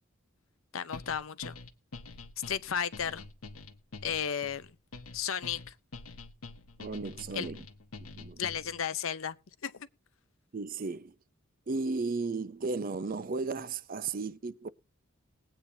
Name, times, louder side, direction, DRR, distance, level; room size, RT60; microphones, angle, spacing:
voice 1, 0.7-1.6 2.5-3.3 4.0-4.7 5.1-5.7 7.3-7.5 8.4-9.4 9.6-9.9, left 8 dB, 75° left, 0.7 m, -34 dB
sound 1, 0.9-8.8, left 3 dB, 90° left, 1.1 m, -46 dB
voice 2, 6.8-7.6 8.0-8.4 10.5-11.1 11.7-14.7, right 3 dB, 40° right, 0.5 m, -34 dB
20.5 x 8.7 x 2.7 m
head